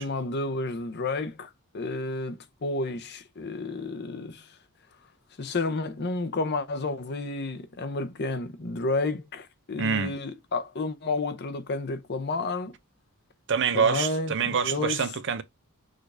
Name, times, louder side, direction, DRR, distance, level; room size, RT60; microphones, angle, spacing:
voice 1, 0.0-4.5 5.4-12.7 13.7-15.0, left 3 dB, 50° left, 0.7 m, -31 dB
voice 2, 9.8-10.1 13.5-15.4, right 6 dB, 55° right, 0.6 m, -26 dB
6.4 x 2.5 x 3.3 m
head